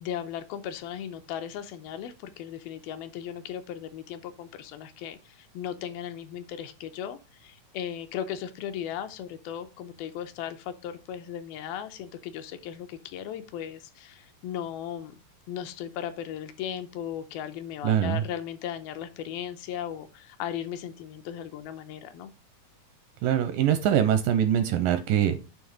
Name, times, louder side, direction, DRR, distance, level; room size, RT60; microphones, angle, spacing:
voice 1, 0.0-15.1 15.5-22.3, left 9 dB, 80° left, 8 dB, 2.4 m, -37 dB
voice 2, 17.8-18.2 23.2-25.4, right 10 dB, 85° right, 10 dB, 2.1 m, -23 dB
9.3 x 3.4 x 5.0 m, 0.30 s
omnidirectional pair, 4.4 m